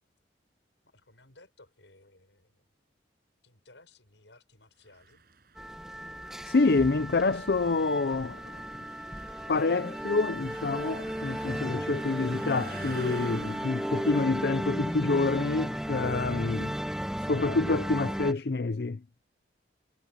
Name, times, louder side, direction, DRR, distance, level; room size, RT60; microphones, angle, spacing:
voice 1, 0.8-2.7 3.4-5.2, left 2 dB, 80° left, 7.4 m, -58 dB
sound 1, 4.9-17.9, right 4 dB, 55° right, 6.9 m, -50 dB
sound 2, 5.6-18.3, equal, 5° right, 1.1 m, -35 dB
voice 2, 6.4-8.6 9.5-16.8 17.2-19.0, left 3 dB, 60° left, 0.6 m, -27 dB
head